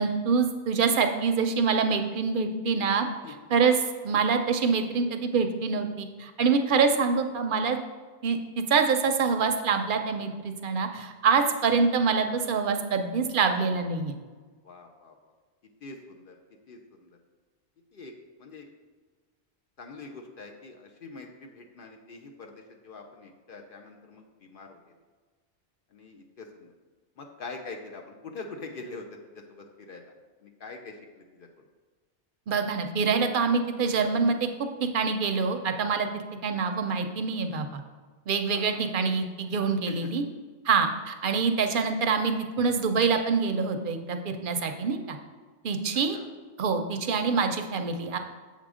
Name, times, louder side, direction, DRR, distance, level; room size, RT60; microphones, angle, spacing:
voice 1, 0.0-7.8 8.2-14.1 32.5-34.5 34.8-36.1 36.4-37.8 38.3-40.2 40.6-45.2 45.6-46.2 46.6-48.2, right 5 dB, 55° right, 6 dB, 0.6 m, -25 dB
voice 2, 14.6-15.1 15.8-16.4 16.7-17.1 17.9-18.1 18.4-18.7 19.8-24.8 25.9-26.7 27.2-29.1 29.3-30.0 30.4-31.0 31.3-31.5 36.4-36.6 38.5-38.9 39.9-40.1 41.3-41.4 46.1-46.3, left 3 dB, 60° left, 3 dB, 0.7 m, -44 dB
7.1 x 3.7 x 4.9 m, 1.4 s
omnidirectional pair, 1.2 m